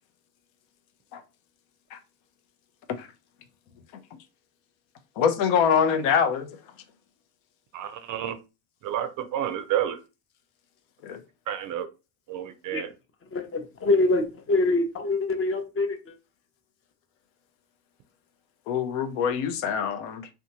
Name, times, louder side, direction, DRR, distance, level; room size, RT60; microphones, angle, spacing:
voice 1, 5.2-6.5 11.0-11.2 18.7-20.3, left 7 dB, 65° left, 0.6 m, -24 dB
voice 2, 7.7-8.4 8.8-10.0 11.5-11.9 12.3-12.9, right 10 dB, 40° right, 0.5 m, -30 dB
voice 3, 13.3-16.2, left 2 dB, 25° left, 0.6 m, -25 dB
2.6 x 2.2 x 2.8 m
hypercardioid pair, 80°, 50 cm